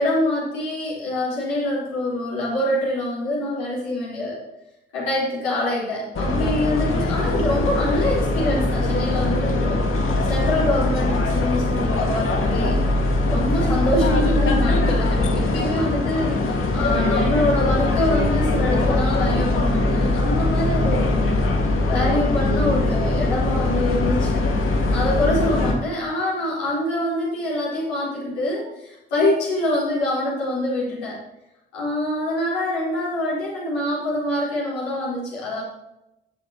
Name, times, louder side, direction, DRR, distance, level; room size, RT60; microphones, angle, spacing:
voice 1, 0.0-4.4 4.9-12.8 13.3-21.3 21.8-24.4 24.9-31.2 31.7-35.6, left 1 dB, 75° left, -7 dB, 4.3 m, -25 dB
sound 1, 6.1-25.7, left 2 dB, 45° left, 2.0 m, -21 dB
16.5 x 7.0 x 3.0 m, 0.91 s
figure-of-eight pair, 45°, 30 cm